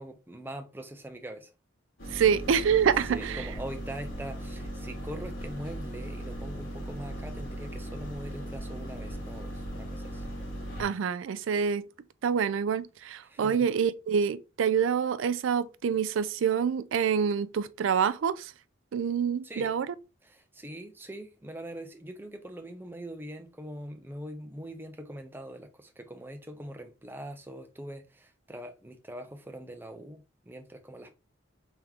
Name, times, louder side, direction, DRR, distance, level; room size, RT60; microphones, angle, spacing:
voice 1, 0.0-1.5 3.0-10.3 13.2-13.7 19.4-19.7 20.2-31.1, right 1 dB, 10° right, 0.6 m, -42 dB
sound 1, 2.0-10.8, right 1 dB, 85° left, 1.9 m, -38 dB
voice 2, 2.1-3.5 10.8-11.8 12.2-18.5 18.9-19.9, right 7 dB, 80° right, 0.4 m, -26 dB
3.6 x 3.4 x 2.9 m
head